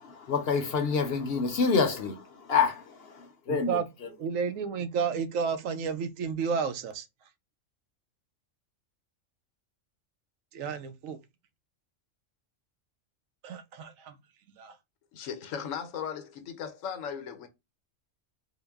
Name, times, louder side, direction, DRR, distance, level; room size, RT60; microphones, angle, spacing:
voice 1, 0.0-3.8, left 5 dB, 60° left, 0.7 m, -27 dB
voice 2, 3.5-7.1 10.5-11.2 13.4-14.2 14.6-14.8, right 6 dB, 85° right, 1.0 m, -32 dB
voice 3, 15.1-17.5, left 7 dB, 80° left, 1.0 m, -37 dB
3.7 x 2.1 x 3.4 m
omnidirectional pair, 1.3 m